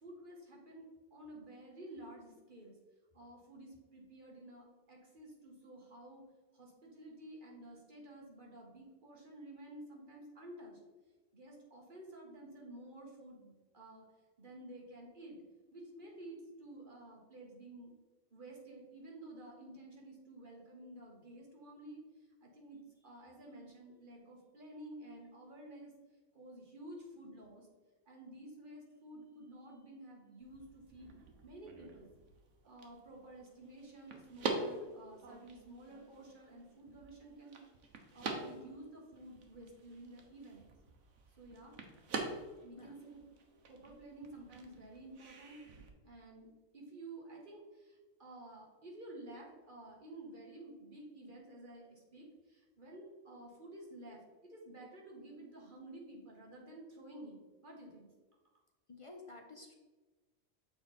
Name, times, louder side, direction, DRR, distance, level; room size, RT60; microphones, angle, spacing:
voice 1, 0.0-2.7 3.1-6.2 6.5-10.8 11.3-14.0 14.4-15.4 15.7-17.9 18.3-25.9 26.3-27.7 28.1-31.1 31.4-32.1 32.6-37.6 38.1-40.7 41.4-41.8 42.6-43.2 43.7-45.6 46.0-46.5 46.7-58.1, right 1 dB, 40° right, -2 dB, 1.4 m, -52 dB
sound 1, 30.4-45.9, right 3 dB, 70° right, 1.2 m, -46 dB
voice 2, 58.9-59.7, left 3 dB, 40° left, 2 dB, 0.5 m, -52 dB
6.8 x 4.3 x 4.1 m, 1.2 s
omnidirectional pair, 1.3 m